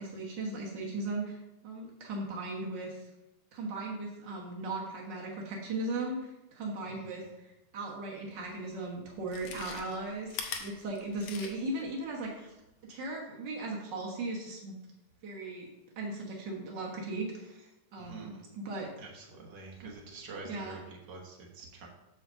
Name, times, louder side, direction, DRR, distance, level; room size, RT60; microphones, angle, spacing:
voice 1, 0.0-3.1 3.5-12.6 12.9-14.7 15.2-15.7 16.0-18.9 20.4-20.8, right 2 dB, 85° right, -2 dB, 0.9 m, -37 dB
Chewing mastication, 8.4-8.5 9.2-11.8 12.2-12.3, left 6 dB, 90° left, 1.3 m, -41 dB
voice 2, 18.0-18.4 19.0-21.9, right 3 dB, 60° right, -1 dB, 1.1 m, -47 dB
5.8 x 5.0 x 6.6 m, 0.95 s
omnidirectional pair, 3.8 m